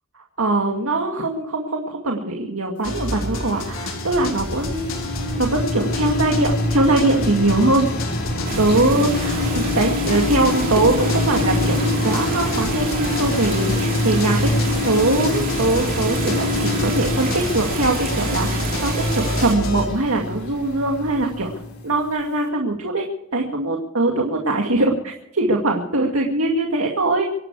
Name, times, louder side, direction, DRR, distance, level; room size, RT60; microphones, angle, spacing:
voice 1, 0.4-4.9 5.4-7.9 8.6-11.8 12.0-14.5 14.8-21.5 21.8-23.1 23.3-24.9 25.3-27.3, right 2 dB, 75° right, 1 dB, 2.2 m, -21 dB
sound 1, 2.8-19.9, left 1 dB, 65° left, 4.5 m, -29 dB
sound 2, 3.1-22.1, left 2 dB, 50° left, 4.1 m, -25 dB
sound 3, 8.5-19.6, right 4 dB, 40° right, 3.0 m, -31 dB
25.5 x 11.5 x 4.8 m, 0.80 s
head